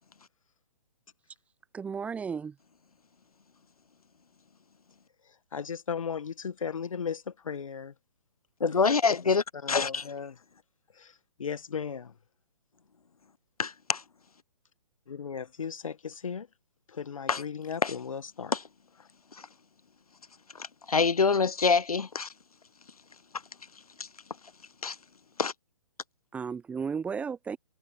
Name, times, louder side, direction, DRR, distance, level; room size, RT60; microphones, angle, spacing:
voice 1, 1.7-2.5 26.3-27.6, right 6 dB, 5° right, 0.8 m, -34 dB
voice 2, 5.2-7.9 9.6-10.4 10.9-12.1 15.1-16.5 16.9-18.5, left 6 dB, 65° left, 1.6 m, -36 dB
voice 3, 8.6-10.1 13.6-14.0 17.3-17.4 17.8-17.9 18.5-18.6 19.3-19.5 20.6-22.3 24.0-24.1 24.8-25.0 25.4-25.5, left 5 dB, 85° left, 0.6 m, -26 dB
figure-of-eight pair, 130°, 19 cm